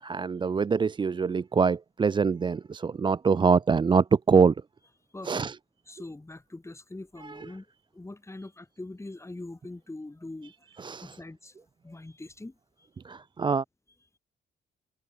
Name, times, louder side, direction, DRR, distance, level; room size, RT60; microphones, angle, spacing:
voice 1, 0.0-4.6 5.2-5.6 7.2-7.5 10.8-11.2 13.0-13.6, right 5 dB, 25° right, 0.4 m, -24 dB
voice 2, 5.1-5.5 5.9-7.7 7.9-12.9, left 2 dB, 15° left, 5.6 m, -43 dB
cardioid pair, 90°, 20 cm